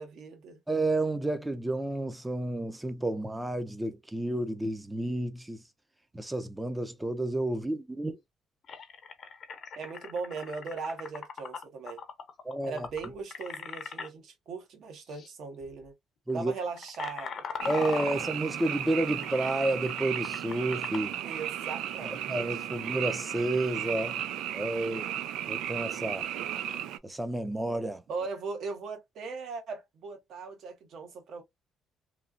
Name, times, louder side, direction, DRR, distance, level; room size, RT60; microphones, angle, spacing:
voice 1, 0.0-0.6 9.7-12.0 12.6-15.9 16.3-17.4 21.2-22.8 24.8-25.1 28.1-31.4, right 4 dB, 65° right, 1.1 m, -39 dB
voice 2, 0.7-5.6 6.1-8.2 12.4-12.9 16.3-16.5 17.7-21.1 22.0-24.2 24.5-25.0 25.5-26.3 27.0-28.0, right 2 dB, 10° right, 0.5 m, -31 dB
sound 1, 8.6-14.1 15.1-15.3 15.6-15.9 16.4-21.2, left 6 dB, 50° left, 0.7 m, -40 dB
Frog, 17.6-27.0, right 11 dB, 85° right, 0.3 m, -35 dB
3.1 x 2.4 x 2.5 m
cardioid pair, 105°, 0 cm